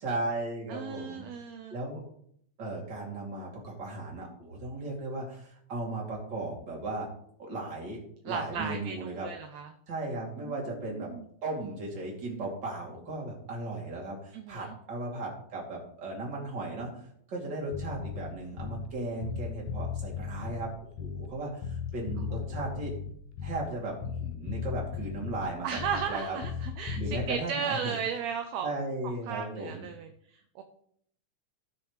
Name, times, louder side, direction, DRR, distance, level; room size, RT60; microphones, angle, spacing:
voice 1, 0.0-2.0 2.6-7.1 7.4-9.3 9.9-11.1 11.4-16.9 17.3-20.7 21.0-22.9 23.4-26.4 26.9-27.9 28.6-29.9, right 2 dB, 35° right, -3 dB, 3.1 m, -36 dB
voice 2, 0.7-1.8 8.3-9.7 10.4-11.3 14.3-14.7 22.3-22.8 25.6-28.7 29.3-30.6, right 7 dB, 75° right, 6 dB, 1.8 m, -36 dB
Bass guitar, 17.7-19.0 19.2-21.4 21.6-23.8 24.0-26.2 26.4-27.3, left 7 dB, 75° left, 1.7 m, -36 dB
17.0 x 6.3 x 3.2 m, 0.67 s
omnidirectional pair, 3.5 m